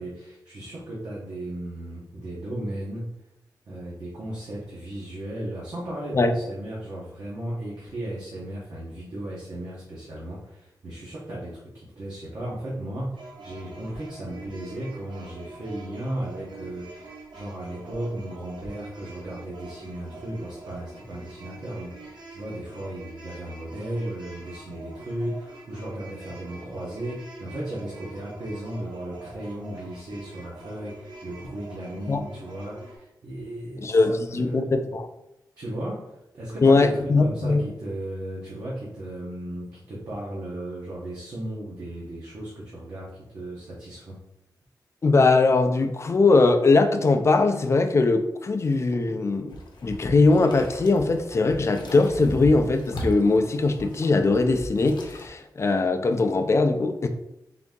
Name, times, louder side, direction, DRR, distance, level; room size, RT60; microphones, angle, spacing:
voice 1, 0.0-3.1 3.7-34.7 35.6-44.2, right 1 dB, 60° right, -6 dB, 1.0 m, -35 dB
sound 1, 13.2-33.0, right 3 dB, 90° right, 0.8 m, -45 dB
voice 2, 33.8-35.1 36.6-37.6 45.0-49.6 49.8-57.1, left 3 dB, 40° left, 7 dB, 0.4 m, -21 dB
sound 2, 49.5-55.3, equal, 90° left, 0.6 m, -38 dB
3.8 x 2.7 x 3.6 m, 0.86 s
wide cardioid pair, 155°, 7 cm